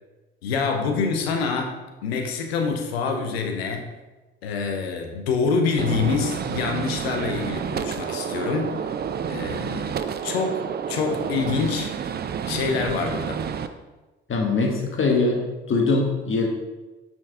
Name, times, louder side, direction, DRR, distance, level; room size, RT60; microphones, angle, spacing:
voice 1, 0.4-3.8 4.4-8.7 9.3-9.9 10.2-11.9 12.5-13.4, left 5 dB, 85° left, 4 dB, 0.7 m, -26 dB
Gunshot gunfire, 5.8-13.7, right 7 dB, 35° right, 0.4 m, -29 dB
voice 2, 14.3-15.4 15.7-16.5, left 3 dB, 40° left, 1 dB, 1.3 m, -22 dB
6.1 x 4.5 x 3.7 m, 1.2 s
hypercardioid pair, 45°, 30 cm